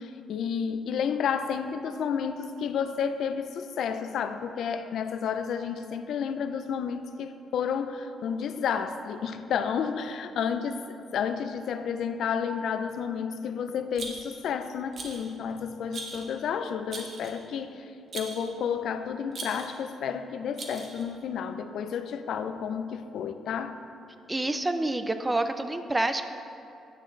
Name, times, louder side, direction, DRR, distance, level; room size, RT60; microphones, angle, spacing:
voice 1, 0.0-23.8, left 7 dB, 70° left, 10 dB, 0.4 m, -31 dB
Rattle, 14.0-14.5 14.9-15.3 15.9-16.3 16.9-17.4 18.1-18.5 19.3-19.8 20.6-21.1, right 3 dB, 55° right, 1.0 m, -39 dB
voice 2, 24.3-26.3, right 2 dB, 15° right, 9 dB, 0.4 m, -28 dB
9.7 x 6.4 x 3.2 m, 2.6 s
cardioid pair, 90°, 0 cm